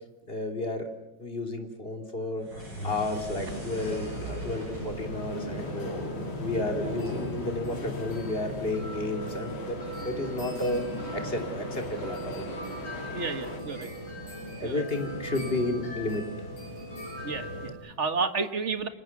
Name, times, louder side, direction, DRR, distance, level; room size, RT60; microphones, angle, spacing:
voice 1, 0.3-0.9 1.2-2.5 2.8-5.9 6.4-9.8 10.0-10.9 11.1-12.5 14.6-16.2, left 2 dB, 25° left, 4 dB, 3.4 m, -32 dB
sound 1, 2.4-6.8, right 1 dB, 90° right, 8.8 m, -41 dB
sound 2, 2.8-13.6, left 4 dB, 90° left, 3.6 m, -43 dB
sound 3, 3.3-17.7, equal, 60° left, 7.9 m, -37 dB
voice 2, 13.1-13.9 14.6-14.9 17.2-18.9, right 4 dB, 35° right, 9 dB, 1.8 m, -31 dB
30.0 x 25.5 x 6.1 m, 0.93 s
omnidirectional pair, 2.2 m